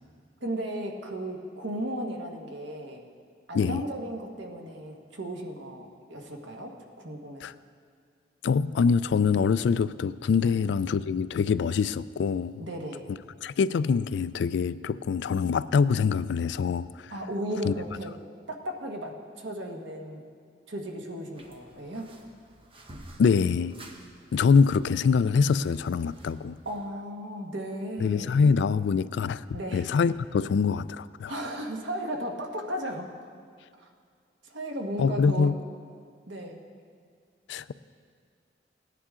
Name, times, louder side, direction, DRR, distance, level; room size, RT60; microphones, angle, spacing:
voice 1, 0.4-3.0 3.5-7.5 10.4-10.5 12.6-13.0 17.1-18.1 18.5-20.2 20.7-22.1 26.6-28.4 29.5-29.8 31.3-33.1 33.8-33.9 34.4-35.5 36.3-36.6, equal, 85° right, 1.5 m, -35 dB
voice 2, 8.4-12.6 13.4-17.1 17.6-17.7 23.2-23.7 24.3-26.6 28.0-29.4 29.7-31.3 35.0-35.6 37.5-37.7, left 5 dB, 70° left, 0.3 m, -24 dB
sound 1, 21.4-26.9, right 1 dB, 30° right, 1.0 m, -52 dB
17.5 x 9.9 x 3.7 m
head